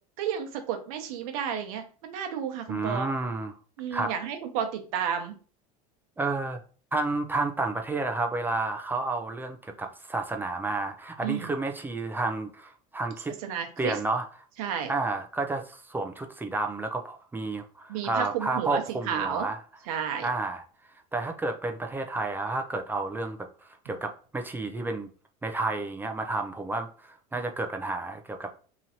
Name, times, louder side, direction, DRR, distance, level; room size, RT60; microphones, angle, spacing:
voice 1, 0.2-3.1 3.8-5.3 11.2-11.5 13.4-14.0 14.6-14.9 17.9-19.5 19.9-20.3, right 8 dB, 80° right, 6 dB, 0.8 m, -31 dB
voice 2, 2.7-3.5 3.9-4.1 6.2-6.6 6.9-13.3 13.8-14.2 14.9-19.6 20.2-20.6 21.1-25.1 25.4-28.5, right 3 dB, 10° right, 4 dB, 0.5 m, -31 dB
3.0 x 2.6 x 4.1 m, 0.39 s
supercardioid pair, 115°, 18 cm